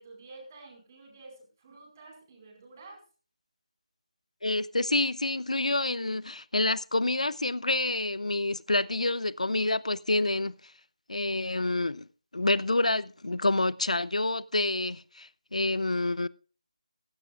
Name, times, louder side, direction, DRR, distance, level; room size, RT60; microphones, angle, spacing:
voice 1, 0.0-3.0, right 3 dB, 30° right, 4.9 m, -50 dB
voice 2, 4.4-10.5 11.1-12.1 12.3-16.3, left 2 dB, 80° left, 0.6 m, -28 dB
16.0 x 16.0 x 2.4 m
figure-of-eight pair, 160°, 4 cm